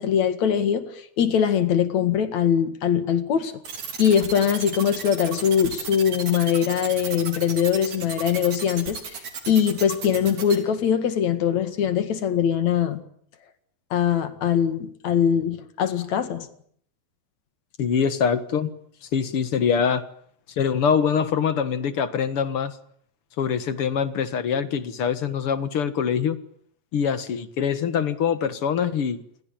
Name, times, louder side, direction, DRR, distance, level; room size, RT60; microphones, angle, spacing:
voice 1, 0.0-3.5 4.0-13.0 13.9-16.5, left 8 dB, 70° left, 3.3 m, -22 dB
sound 1, 3.6-10.6, right 6 dB, 85° right, 5.0 m, -34 dB
voice 2, 17.8-18.7 19.1-20.0 20.6-22.7 23.4-26.4 26.9-29.2, left 7 dB, 55° left, 2.2 m, -24 dB
28.5 x 22.5 x 8.9 m
omnidirectional pair, 3.4 m